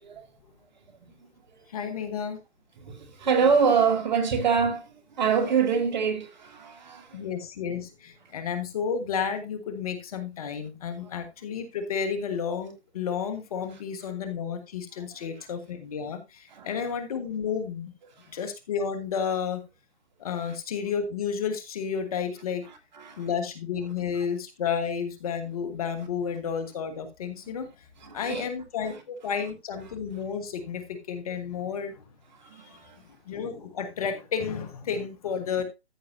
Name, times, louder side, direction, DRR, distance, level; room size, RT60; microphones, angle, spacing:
voice 1, 1.7-2.4 7.1-17.9 18.3-19.6 20.2-22.6 23.2-27.7 28.1-32.0 33.3-35.6, left 6 dB, 35° left, 1.4 m, -31 dB
voice 2, 2.8-7.2 16.5-16.7 23.0-23.3 28.0-28.5 32.4-33.0, right 6 dB, 40° right, 1.9 m, -25 dB
13.5 x 6.7 x 2.7 m
hypercardioid pair, 150°, 33 cm